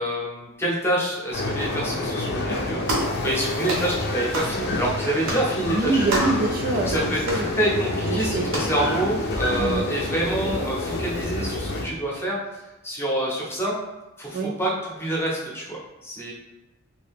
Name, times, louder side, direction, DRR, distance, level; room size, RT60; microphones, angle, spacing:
voice 1, 0.0-2.8 3.2-6.0 6.7-12.4 12.8-13.8 14.2-16.3, right 1 dB, 10° left, -4 dB, 0.7 m, -27 dB
sound 1, 1.3-11.8, left 2 dB, 50° left, 0.5 m, -28 dB
sound 2, 2.9-3.1 3.7-3.9 4.3-4.5 5.2-5.5 6.1-6.4 7.2-7.4 8.5-8.7, right 1 dB, 60° right, 0.9 m, -27 dB
voice 2, 5.7-7.5 8.1-8.5 9.6-9.9 14.3-14.5, right 3 dB, 40° right, 2 dB, 0.3 m, -25 dB
2.8 x 2.8 x 3.4 m, 1.0 s
head